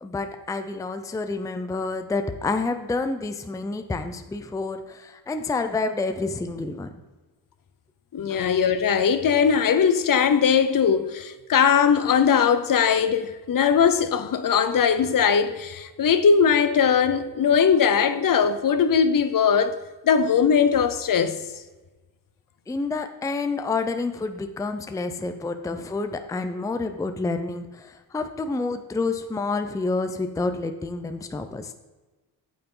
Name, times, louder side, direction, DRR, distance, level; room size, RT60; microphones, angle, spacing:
voice 1, 0.0-7.0 8.3-8.5 22.7-31.7, left 3 dB, 10° left, 0.5 m, -29 dB
voice 2, 8.1-19.7 20.0-21.4, left 7 dB, 50° left, 0.7 m, -20 dB
8.9 x 8.5 x 3.8 m
wide cardioid pair, 155°, 41 cm